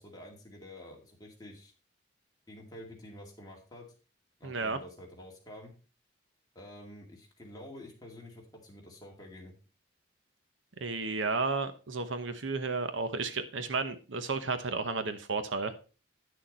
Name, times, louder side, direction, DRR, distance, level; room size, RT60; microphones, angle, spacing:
voice 1, 0.0-1.7 2.5-3.9 4.4-5.7 6.5-9.5, left 1 dB, 20° left, -1 dB, 2.3 m, -49 dB
voice 2, 4.4-4.8 10.8-15.7, right 4 dB, 80° right, 10 dB, 1.0 m, -32 dB
9.6 x 6.5 x 4.2 m, 0.35 s
head